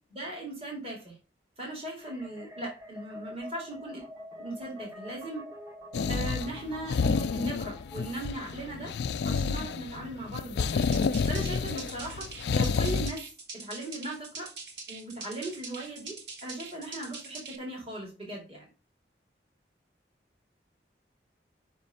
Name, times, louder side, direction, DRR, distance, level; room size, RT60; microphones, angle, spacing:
voice 1, 0.1-1.2 1.6-4.0 4.4-5.4 6.1-8.9 9.2-10.9 11.3-13.3 13.5-14.5 14.9-18.6, right 1 dB, 35° right, -2 dB, 2.4 m, -38 dB
sound 1, 2.0-8.4, equal, 15° right, 1.0 m, -47 dB
sound 2, 5.9-13.1, left 5 dB, 70° left, 0.4 m, -29 dB
sound 3, 10.7-17.6, right 3 dB, 75° right, 1.4 m, -43 dB
5.6 x 5.1 x 5.4 m, 0.33 s
head